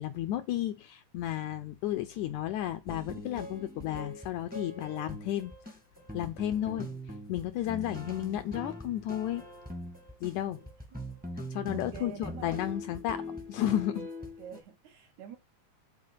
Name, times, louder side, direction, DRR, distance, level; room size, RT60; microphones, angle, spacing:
voice 1, 0.0-5.5 6.1-6.9 7.3-9.5 10.2-10.6 11.5-13.2 13.5-14.1, left 12 dB, 80° left, 1.8 m, -33 dB
sound 1, 2.9-14.6, left 1 dB, 5° right, 0.7 m, -42 dB
voice 2, 6.7-7.0 10.4-11.0 11.7-12.6 14.4-15.4, right 9 dB, 70° right, 2.0 m, -48 dB
9.8 x 4.2 x 5.7 m
omnidirectional pair, 3.9 m